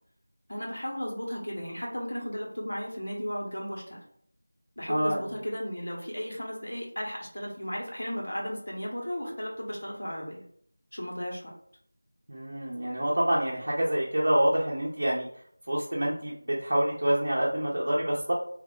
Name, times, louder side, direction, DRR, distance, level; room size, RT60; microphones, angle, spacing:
voice 1, 0.5-4.0 4.8-10.4 10.9-11.5, equal, 75° left, -2 dB, 1.4 m, -35 dB
voice 2, 4.9-5.2 12.3-15.3 15.7-18.3, right 1 dB, 55° right, -4 dB, 0.6 m, -27 dB
2.8 x 2.1 x 3.7 m, 0.63 s
figure-of-eight pair, 175°, 0 cm